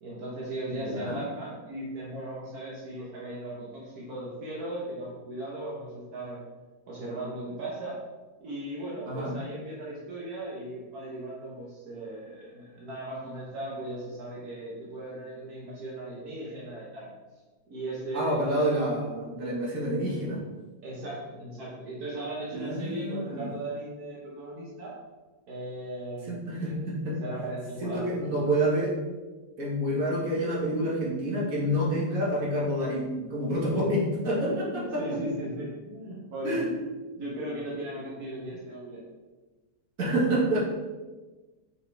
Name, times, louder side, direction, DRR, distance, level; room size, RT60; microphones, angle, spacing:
voice 1, 0.0-6.4 6.9-8.0 8.4-17.1 17.7-18.6 20.8-24.9 25.5-26.8 27.2-28.5 32.1-32.2 33.7-33.9 34.4-36.6 37.2-39.0, right 1 dB, 80° right, -6 dB, 1.7 m, -37 dB
voice 2, 0.9-1.2 9.1-9.3 18.1-20.4 22.5-23.5 26.3-27.2 27.8-28.9 29.6-35.2 36.4-36.7 40.0-40.6, right 1 dB, 65° right, -4 dB, 2.0 m, -28 dB
6.0 x 5.6 x 3.4 m, 1.3 s
omnidirectional pair, 1.6 m